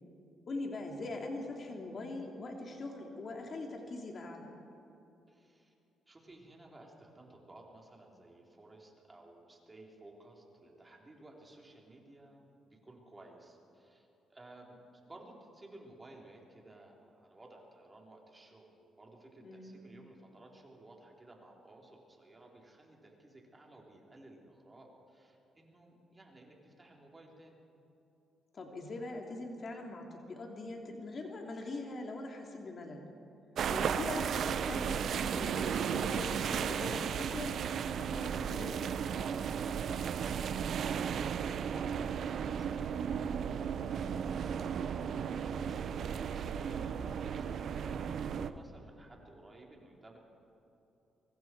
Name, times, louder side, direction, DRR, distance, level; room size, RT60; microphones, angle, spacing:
voice 1, 0.5-4.5 19.4-19.8 28.5-33.1 33.7-37.6 37.9-39.1, left 2 dB, 45° left, 2 dB, 2.8 m, -42 dB
voice 2, 5.3-5.7 6.1-14.8 15.1-27.6 40.2-50.2, right 2 dB, 20° right, -1 dB, 4.0 m, -56 dB
sound 1, 33.6-48.5, right 7 dB, 65° right, 0.8 m, -35 dB
23.5 x 23.5 x 4.7 m, 2.8 s
cardioid pair, 90°, 0 cm